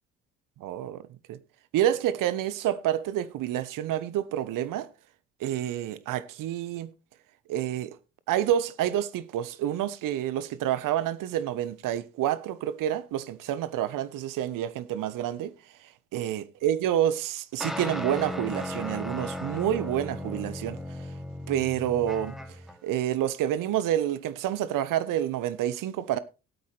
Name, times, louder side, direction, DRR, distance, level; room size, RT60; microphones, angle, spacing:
voice 1, 0.6-1.0 1.3-1.4 1.7-4.9 5.4-6.9 7.5-8.0 8.3-15.5 15.8-21.1 21.5-22.4 22.8-26.2, right 11 dB, 65° right, 1.0 m, -28 dB
sound 1, 17.6-22.8, left 1 dB, ahead, 2.5 m, -36 dB
16.5 x 8.5 x 3.2 m
hypercardioid pair, 55°, 35 cm